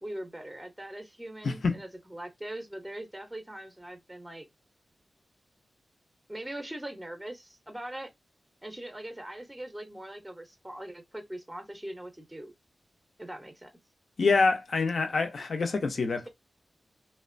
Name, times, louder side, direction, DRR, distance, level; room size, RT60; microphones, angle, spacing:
voice 1, 0.0-4.5 6.3-8.1 8.6-12.5 13.2-13.7, right 1 dB, 10° right, 0.5 m, -41 dB
voice 2, 1.4-1.7 14.2-16.3, left 4 dB, 60° left, 0.5 m, -26 dB
2.8 x 2.1 x 2.5 m
wide cardioid pair, 105°, 0 cm